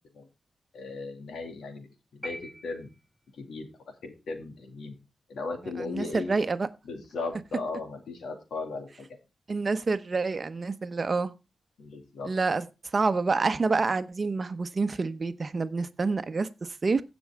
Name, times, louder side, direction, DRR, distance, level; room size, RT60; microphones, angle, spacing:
voice 1, 0.7-1.9 2.1-2.4 2.6-2.9 3.4-3.7 4.0-4.9 5.3-6.4 6.8-9.2 11.8-12.3, left 3 dB, 90° left, 2.3 m, -36 dB
sound 1, 2.2-3.5, equal, ahead, 2.8 m, -43 dB
voice 2, 5.8-6.7 9.5-11.3 12.2-12.7 12.9-17.0, right 4 dB, 45° right, 0.9 m, -27 dB
16.0 x 6.2 x 3.5 m
cardioid pair, 75°, 0 cm